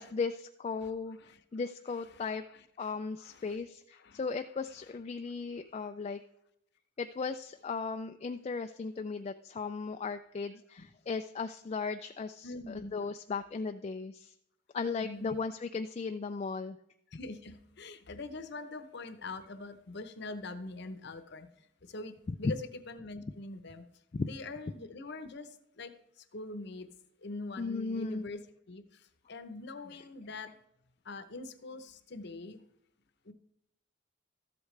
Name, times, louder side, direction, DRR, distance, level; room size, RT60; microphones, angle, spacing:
voice 1, 0.0-1.2 1.5-2.4 2.8-6.2 7.0-14.3 14.7-16.8 22.4-22.5 24.1-24.3 27.6-28.2, left 4 dB, 30° left, 7 dB, 0.3 m, -36 dB
voice 2, 0.8-1.4 1.9-3.7 3.9-5.0 10.8-10.9 12.4-12.9 15.0-15.4 17.1-21.5 21.8-23.8 24.2-26.9 27.2-30.6 31.0-32.6 33.2-33.3, left 2 dB, 55° left, 11 dB, 0.8 m, -44 dB
13.5 x 8.0 x 3.2 m, 0.79 s
head